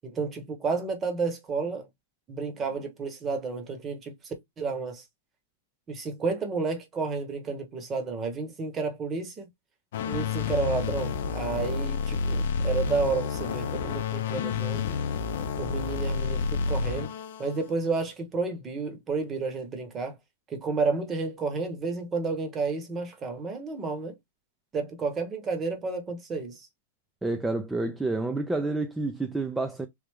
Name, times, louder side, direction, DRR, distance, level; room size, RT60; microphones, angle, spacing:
voice 1, 0.0-1.9 2.3-5.0 5.9-9.5 10.1-14.8 15.6-17.1 17.4-20.2 20.5-24.2 24.7-26.7, right 4 dB, 20° right, 0.9 m, -31 dB
sound 1, 9.9-17.7, left 5 dB, 70° left, 0.5 m, -29 dB
voice 2, 27.2-29.9, right 2 dB, 5° right, 0.4 m, -29 dB
3.3 x 2.4 x 3.4 m
hypercardioid pair, 135°, 0 cm